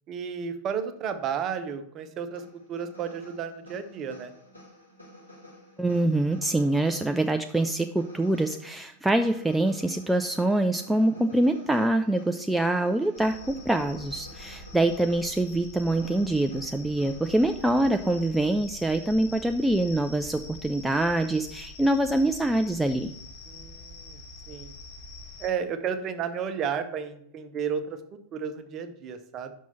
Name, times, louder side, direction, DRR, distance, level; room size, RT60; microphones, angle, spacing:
voice 1, 0.1-2.4 2.7-4.3 23.5-24.2 24.5-24.7 25.4-29.5, right 7 dB, 30° right, 9 dB, 0.9 m, -32 dB
sound 1, 2.3-18.2, equal, 85° left, 2.9 m, -50 dB
voice 2, 5.8-23.1, right 1 dB, 5° right, 6 dB, 0.4 m, -25 dB
sound 2, 13.2-25.5, left 2 dB, 50° left, 2.9 m, -45 dB
6.0 x 5.5 x 6.9 m, 0.71 s
figure-of-eight pair, 90°, 0 cm